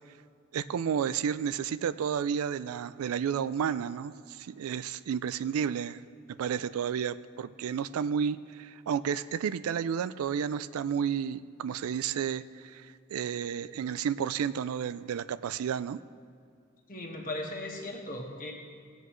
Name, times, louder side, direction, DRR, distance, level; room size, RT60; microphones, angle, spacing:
voice 1, 0.5-6.0 6.4-16.0, right 7 dB, 90° right, 14 dB, 0.3 m, -31 dB
voice 2, 16.9-18.5, left 1 dB, 40° left, -1 dB, 1.5 m, -37 dB
19.0 x 8.0 x 3.1 m, 2.3 s
head